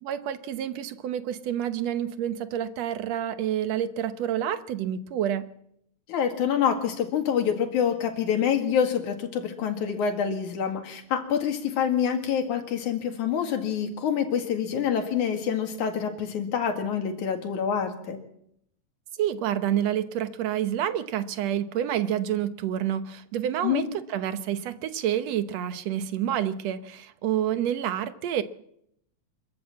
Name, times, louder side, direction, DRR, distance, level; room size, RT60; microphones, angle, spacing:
voice 1, 0.0-5.5 19.2-28.4, right 10 dB, 65° right, 11 dB, 2.1 m, -28 dB
voice 2, 6.1-18.2 23.6-23.8, left 8 dB, 85° left, 4 dB, 3.5 m, -26 dB
25.5 x 14.0 x 7.6 m, 0.75 s
omnidirectional pair, 3.4 m